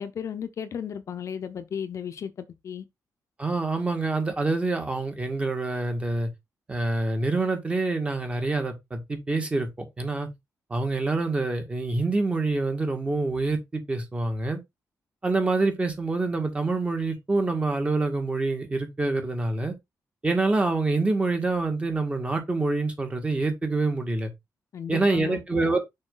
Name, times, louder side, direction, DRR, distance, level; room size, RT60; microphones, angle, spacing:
voice 1, 0.0-2.8 24.7-25.4, left 8 dB, 50° left, 0.8 m, -34 dB
voice 2, 3.4-6.3 6.7-10.3 10.7-14.6 15.2-19.7 20.2-24.3 24.9-25.8, right 3 dB, 20° right, 1.8 m, -26 dB
6.5 x 5.4 x 3.9 m
wide cardioid pair, 175°, 6 cm